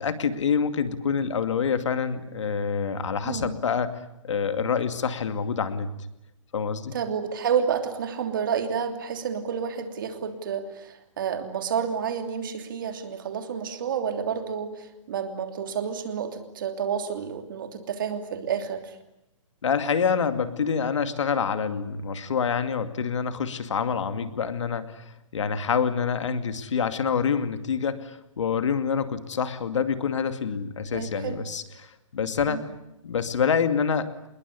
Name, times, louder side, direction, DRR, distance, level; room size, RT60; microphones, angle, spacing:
voice 1, 0.0-3.9 4.2-5.9 6.5-7.0 19.6-32.6 33.0-34.1, left 6 dB, 65° left, 10 dB, 2.4 m, -26 dB
voice 2, 3.2-3.6 6.9-19.0 30.9-31.4 32.5-32.6, right 7 dB, 40° right, 7 dB, 3.0 m, -30 dB
27.0 x 21.5 x 9.8 m, 0.87 s
hypercardioid pair, 175°, 17 cm